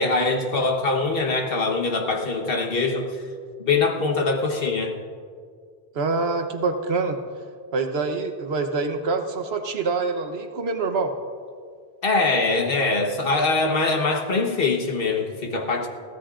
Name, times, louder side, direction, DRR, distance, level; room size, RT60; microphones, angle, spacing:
voice 1, 0.0-3.3 3.6-4.9 12.0-15.9, left 3 dB, 65° left, 3 dB, 1.4 m, -23 dB
voice 2, 5.9-7.2 7.7-11.1, right 4 dB, 75° right, 6 dB, 1.2 m, -25 dB
22.0 x 16.0 x 2.5 m, 2.1 s
omnidirectional pair, 1.1 m